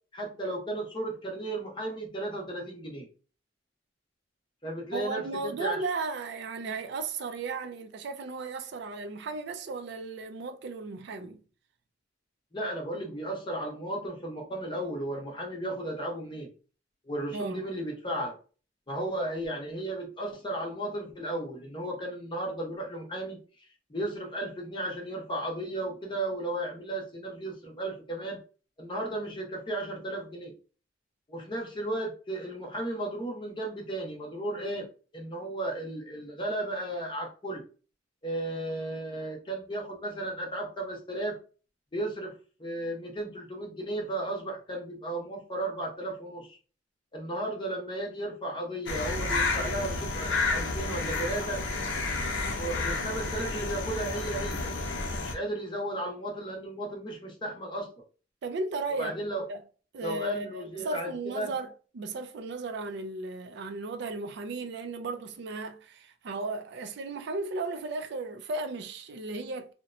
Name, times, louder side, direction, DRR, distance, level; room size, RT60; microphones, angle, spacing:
voice 1, 0.1-3.1 4.6-5.8 12.5-16.5 17.1-18.4 18.9-23.4 23.9-28.4 28.8-30.5 31.3-34.9 35.1-37.6 38.2-41.4 41.9-42.3 42.6-46.6 47.1-51.6 52.4-54.7 55.2-57.9 59.0-59.4 60.0-61.5, right 1 dB, 25° left, 0.8 m, -34 dB
voice 2, 4.9-11.4 17.3-17.6 58.4-59.2 59.5-59.6 59.9-69.7, right 3 dB, 65° right, 0.4 m, -35 dB
sound 1, 48.9-55.3, left 3 dB, 75° left, 0.6 m, -31 dB
2.8 x 2.1 x 2.5 m
head